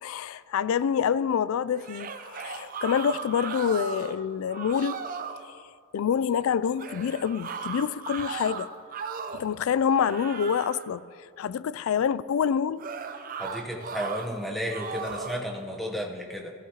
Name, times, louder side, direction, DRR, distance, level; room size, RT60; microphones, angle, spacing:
voice 1, 0.0-4.9 5.9-8.7 9.3-11.1 11.4-12.8, left 7 dB, 70° left, 0.3 m, -26 dB
sound 1, 1.7-4.2 4.5-5.4 6.8-9.5 9.9-10.9 12.8-14.3 14.7-15.4, right 5 dB, 40° right, 0.5 m, -37 dB
voice 2, 13.4-16.5, equal, ahead, 0.9 m, -33 dB
14.5 x 14.0 x 2.9 m
head